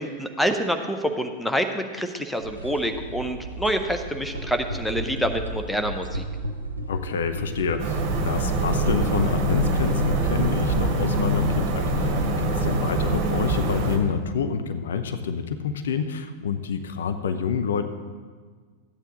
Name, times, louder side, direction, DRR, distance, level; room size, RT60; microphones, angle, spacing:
voice 1, 0.0-6.2, equal, 5° left, 6 dB, 0.7 m, -27 dB
sound 1, 2.4-10.9, right 1 dB, 80° right, 0.8 m, -34 dB
voice 2, 6.9-17.9, left 6 dB, 65° left, 8 dB, 0.6 m, -28 dB
sound 2, 7.8-14.0, right 2 dB, 40° right, 1.6 m, -24 dB
13.5 x 9.0 x 3.8 m, 1.5 s
figure-of-eight pair, 90°, 0 cm